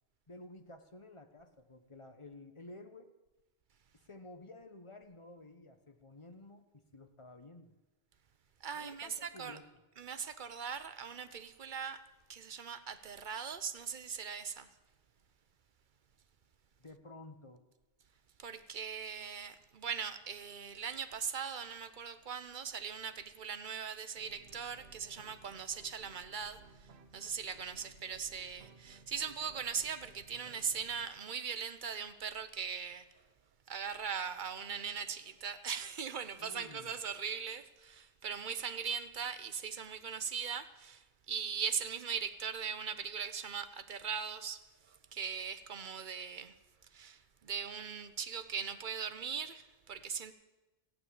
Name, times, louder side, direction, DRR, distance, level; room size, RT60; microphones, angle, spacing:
voice 1, 0.3-3.1 4.1-7.7 8.7-9.8 16.8-17.6 36.4-37.0, left 2 dB, 30° left, 1.1 m, -53 dB
voice 2, 8.6-9.6 10.0-12.0 12.3-14.7 18.4-26.6 27.1-33.0 33.7-44.6 44.9-46.5 46.9-50.3, right 6 dB, 55° right, 0.9 m, -40 dB
sound 1, 24.2-31.1, right 4 dB, 80° right, 1.3 m, -59 dB
15.0 x 8.7 x 8.7 m
omnidirectional pair, 1.0 m